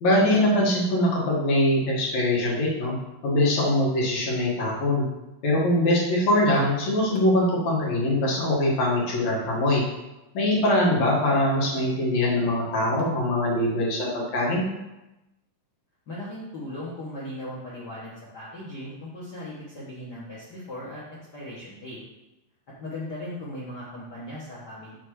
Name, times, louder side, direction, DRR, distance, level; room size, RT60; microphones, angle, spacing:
voice 1, 0.0-2.9 3.2-5.1 5.4-9.8 10.3-14.7, left 1 dB, 55° left, -5 dB, 2.6 m, -22 dB
voice 2, 16.1-21.0 21.3-22.0 22.8-25.0, left 1 dB, 75° left, -8 dB, 0.9 m, -38 dB
7.3 x 3.3 x 6.2 m, 0.99 s
omnidirectional pair, 4.1 m